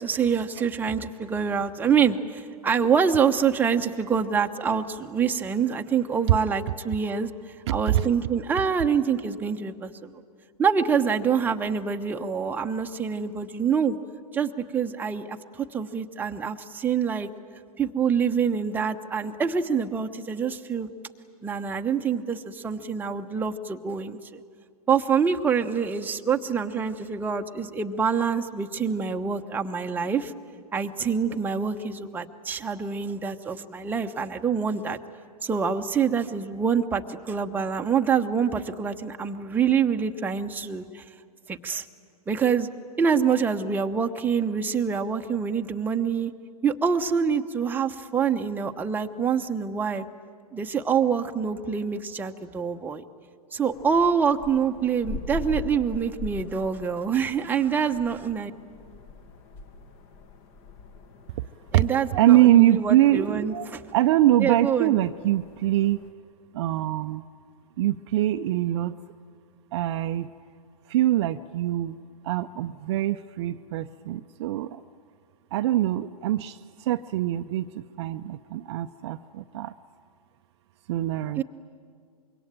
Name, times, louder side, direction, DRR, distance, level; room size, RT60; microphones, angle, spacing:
voice 1, 0.0-7.3 7.7-10.2 10.6-14.0 14.3-17.3 17.8-20.9 21.4-24.4 24.9-30.3 30.7-35.0 35.4-41.0 41.5-41.8 42.3-42.7 43.0-46.3 46.6-50.0 50.5-53.0 53.5-58.5 61.7-63.8 64.4-65.0 81.4-81.5, right 6 dB, 10° right, 4 dB, 0.9 m, -26 dB
voice 2, 7.7-8.1 61.7-63.7 63.9-66.0 66.5-67.2 67.8-69.0 69.7-70.3 70.9-72.0 72.2-74.8 75.5-79.7 80.9-81.4, right 14 dB, 45° right, 9 dB, 0.6 m, -23 dB
sound 1, 53.7-66.1, left 3 dB, 35° left, 1.6 m, -42 dB
25.5 x 23.0 x 9.0 m, 2.2 s
figure-of-eight pair, 115°, 20 cm